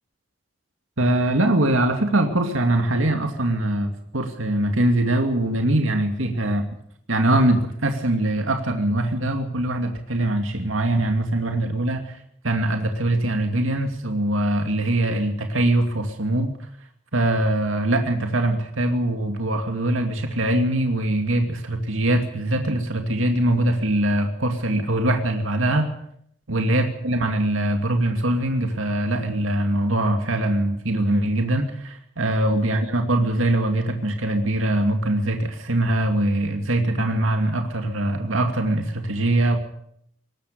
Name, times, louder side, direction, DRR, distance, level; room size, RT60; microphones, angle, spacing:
voice 1, 1.0-6.6 7.1-12.2 12.4-16.6 17.1-25.9 26.5-39.6, right 1 dB, 85° right, 5 dB, 2.5 m, -22 dB
21.5 x 18.5 x 6.9 m, 0.68 s
head